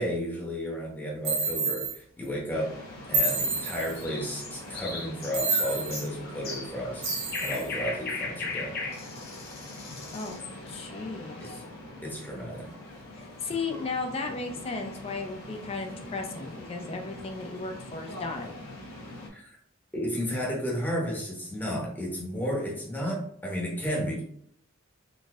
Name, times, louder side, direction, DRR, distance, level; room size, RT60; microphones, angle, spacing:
voice 1, 0.0-2.8 3.1-8.8 11.4-11.5 12.0-12.7 19.3-19.5 19.9-24.2, equal, 10° left, -3 dB, 0.8 m, -33 dB
sound 1, 1.2-2.0 3.1-4.0 5.3-6.0 7.0-7.7, right 3 dB, 75° right, 0.9 m, -28 dB
sound 2, 2.5-19.3, left 1 dB, 85° left, 1.1 m, -43 dB
sound 3, 4.0-10.5, left 4 dB, 45° left, 0.7 m, -37 dB
voice 2, 10.1-11.6 13.1-18.6, left 3 dB, 30° left, 4 dB, 0.3 m, -35 dB
3.8 x 2.6 x 2.4 m, 0.66 s
head